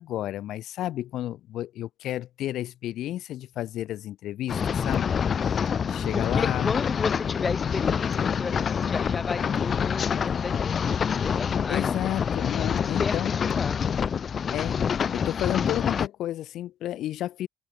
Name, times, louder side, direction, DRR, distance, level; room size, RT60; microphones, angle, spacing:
voice 1, 0.0-5.1 5.4-5.5 5.8-6.7 11.7-13.3 14.5-14.8 15.1-17.5, left 13 dB, 80° left, 3.9 m, -31 dB
sound 1, 4.5-16.1, left 7 dB, 55° left, 1.3 m, -26 dB
voice 2, 6.1-12.1 12.6-14.0, left 4 dB, 35° left, 3.7 m, -33 dB
cardioid pair, 75°, 0 cm